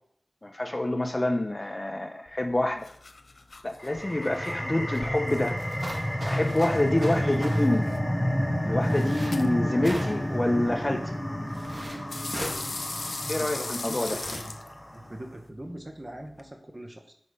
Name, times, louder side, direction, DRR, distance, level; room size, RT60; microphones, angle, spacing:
voice 1, 0.4-2.9 3.6-5.6 6.3-7.8 8.6-11.0 13.3-14.2, left 1 dB, 30° left, 5 dB, 0.9 m, -27 dB
sound 1, 2.3-16.5, left 3 dB, 65° left, 0.8 m, -42 dB
sound 2, 3.8-15.0, equal, 10° left, 1.2 m, -30 dB
sound 3, 5.6-7.6 8.8-9.3 9.8-10.3 11.5-12.0 12.3-12.6 13.9-14.4, right 1 dB, 45° right, 2.4 m, -38 dB
voice 2, 13.2-14.5 14.9-17.1, right 1 dB, 25° right, 4 dB, 1.6 m, -41 dB
9.2 x 6.1 x 5.5 m, 0.65 s
wide cardioid pair, 75°, 0 cm